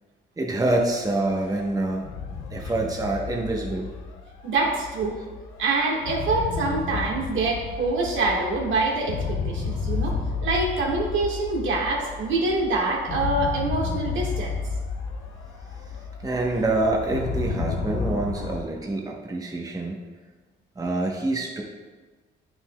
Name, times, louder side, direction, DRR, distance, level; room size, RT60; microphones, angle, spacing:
voice 1, 0.4-2.0 2.5-3.9 15.8-20.0 20.8-21.6, right 2 dB, 20° right, 0 dB, 0.9 m, -26 dB
sound 1, 0.8-18.6, left 5 dB, 90° left, 0.8 m, -32 dB
voice 2, 4.4-5.1 5.6-10.2 10.4-14.6, right 3 dB, 75° right, -2 dB, 1.6 m, -25 dB
9.2 x 6.0 x 2.3 m, 1.3 s
cardioid pair, 90°, 20 cm